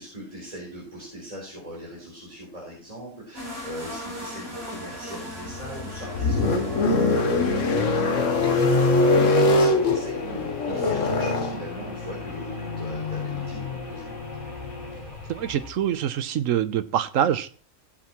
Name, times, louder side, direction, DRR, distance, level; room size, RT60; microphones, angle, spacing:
voice 1, 0.0-14.2, right 1 dB, 30° right, -5 dB, 4.0 m, -39 dB
sound 1, 3.3-8.9, equal, 65° right, 4.2 m, -38 dB
sound 2, 5.4-15.7, left 2 dB, 75° left, 1.4 m, -24 dB
sound 3, 6.0-15.7, left 2 dB, 40° left, 2.1 m, -39 dB
voice 2, 15.3-17.6, right 10 dB, 90° right, 12 dB, 1.1 m, -25 dB
16.0 x 7.6 x 3.0 m, 0.42 s
omnidirectional pair, 1.3 m